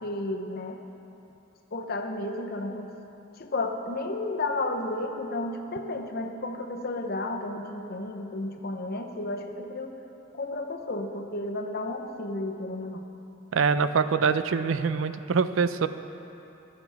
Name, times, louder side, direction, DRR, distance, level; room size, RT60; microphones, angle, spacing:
voice 1, 0.0-0.8 1.7-2.9 3.4-9.9 10.3-13.0, left 2 dB, 50° left, 4 dB, 0.8 m, -32 dB
voice 2, 13.5-15.9, right 5 dB, 90° right, 12 dB, 0.5 m, -24 dB
23.5 x 7.8 x 3.5 m, 2.9 s
head